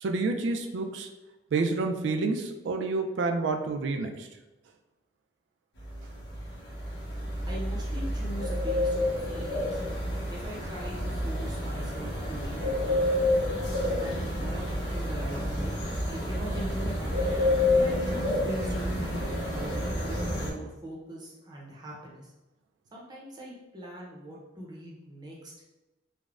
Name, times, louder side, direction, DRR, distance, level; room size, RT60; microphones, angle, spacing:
voice 1, 0.0-1.1 1.5-4.3, right 3 dB, 80° right, 4 dB, 0.3 m, -29 dB
sound 1, 5.8-20.5, left 1 dB, 90° left, 0.8 m, -29 dB
voice 2, 7.5-9.8 10.3-13.0 13.9-15.8 16.0-17.1 17.7-22.3 22.9-25.5, right 1 dB, 25° right, -4 dB, 0.6 m, -41 dB
3.3 x 2.0 x 2.4 m, 1.0 s
head